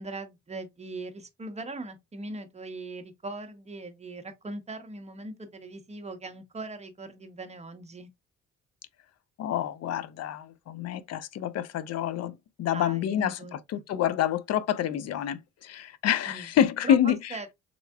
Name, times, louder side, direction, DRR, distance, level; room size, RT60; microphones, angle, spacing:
voice 1, 0.0-8.1 12.7-13.5 16.3-16.5 16.8-17.0 17.3-17.5, right 2 dB, 20° right, 0.8 m, -40 dB
voice 2, 9.4-13.4 13.7-17.4, left 10 dB, 60° left, 0.5 m, -27 dB
3.7 x 3.2 x 2.3 m
cardioid pair, 90°, 30 cm